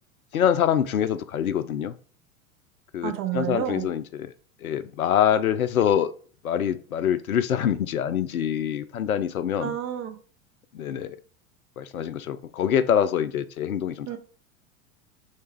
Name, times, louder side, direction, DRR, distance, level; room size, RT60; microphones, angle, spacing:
voice 1, 0.3-1.9 2.9-4.3 4.6-6.1 6.4-9.7 10.7-11.2 11.8-14.2, left 9 dB, 80° left, 0.5 m, -25 dB
voice 2, 3.0-3.9 9.6-10.2 14.1-14.2, right 11 dB, 30° right, 0.6 m, -30 dB
3.4 x 3.2 x 4.4 m
figure-of-eight pair, 85°, 42 cm